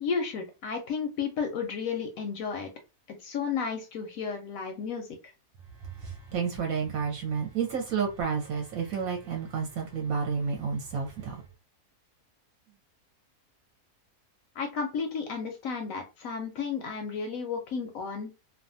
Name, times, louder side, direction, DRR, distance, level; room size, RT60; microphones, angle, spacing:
voice 1, 0.0-2.7 3.1-5.1 14.6-18.3, left 5 dB, 70° left, 0.9 m, -33 dB
voice 2, 6.3-11.4, right 6 dB, 70° right, 1.0 m, -30 dB
2.6 x 2.2 x 2.6 m
omnidirectional pair, 1.7 m